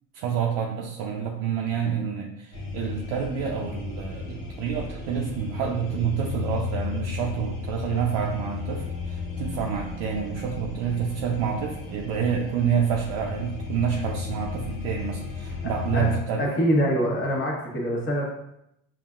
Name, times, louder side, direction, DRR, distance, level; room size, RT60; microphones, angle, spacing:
voice 1, 0.1-16.4, right 7 dB, 65° right, -1 dB, 0.6 m, -28 dB
sound 1, 2.5-16.2, left 4 dB, 75° left, 1.1 m, -34 dB
voice 2, 16.4-18.3, equal, 30° left, -3 dB, 1.3 m, -24 dB
5.2 x 2.6 x 2.4 m, 0.80 s
hypercardioid pair, 70°, 40 cm